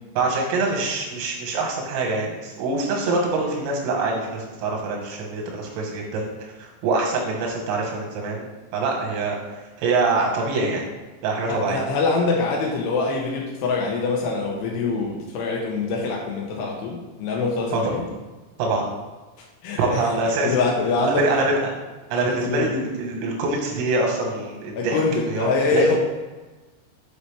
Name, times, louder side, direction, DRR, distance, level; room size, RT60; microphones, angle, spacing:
voice 1, 0.2-8.5 8.7-10.8 11.2-11.8 17.7-17.9 18.6-18.9 19.8-20.6 21.0-21.6 22.1-25.0 25.3-26.0, right 3 dB, 90° right, 0 dB, 4.1 m, -25 dB
voice 2, 11.5-18.0 19.6-20.0 20.3-21.3 22.1-22.7 24.7-26.0, left 3 dB, 85° left, -1 dB, 2.4 m, -24 dB
8.6 x 5.2 x 3.4 m, 1.2 s
omnidirectional pair, 5.8 m